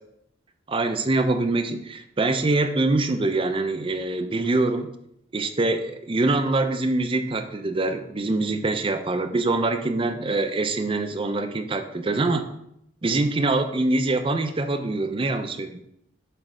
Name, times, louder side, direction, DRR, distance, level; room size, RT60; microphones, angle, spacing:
voice 1, 0.7-4.9 5.3-12.4 13.0-15.8, right 2 dB, 30° right, 7 dB, 0.5 m, -24 dB
7.5 x 3.2 x 5.0 m, 0.76 s
head